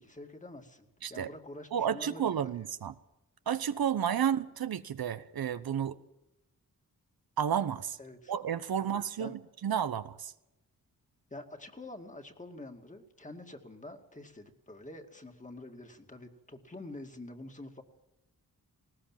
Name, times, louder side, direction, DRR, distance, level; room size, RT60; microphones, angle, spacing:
voice 1, 0.0-2.6 8.0-8.3 8.8-9.4 11.3-17.8, left 2 dB, 20° left, 2.3 m, -47 dB
voice 2, 1.7-2.9 3.5-6.0 7.4-8.0 8.3-10.3, right 8 dB, 85° right, 1.0 m, -31 dB
19.5 x 18.0 x 7.5 m
wide cardioid pair, 115°, 35 cm